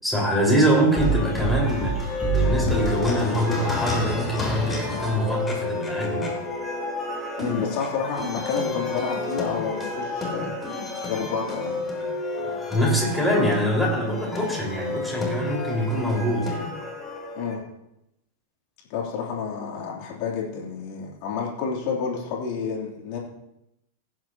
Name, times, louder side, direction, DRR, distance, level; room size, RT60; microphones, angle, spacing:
voice 1, 0.0-6.3 12.4-16.6, equal, ahead, -3 dB, 4.9 m, -24 dB
sound 1, 0.9-17.5, left 1 dB, 15° left, 3.7 m, -29 dB
voice 2, 7.4-10.5 11.0-11.8 15.5-15.6 17.3-17.6 18.9-23.2, left 6 dB, 45° left, -2 dB, 3.2 m, -30 dB
18.0 x 9.6 x 2.9 m, 0.85 s
figure-of-eight pair, 90°, 0 cm